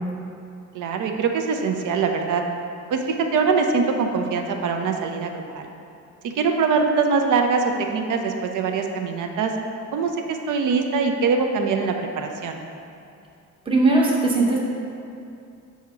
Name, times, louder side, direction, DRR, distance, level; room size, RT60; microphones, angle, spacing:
voice 1, 0.7-2.4 2.9-5.7 6.2-9.5 9.9-12.6, right 5 dB, 70° right, 4 dB, 0.6 m, -23 dB
voice 2, 13.7-14.6, right 2 dB, 15° right, -4 dB, 0.8 m, -18 dB
7.1 x 2.8 x 4.8 m, 2.6 s
cardioid pair, 140°, 32 cm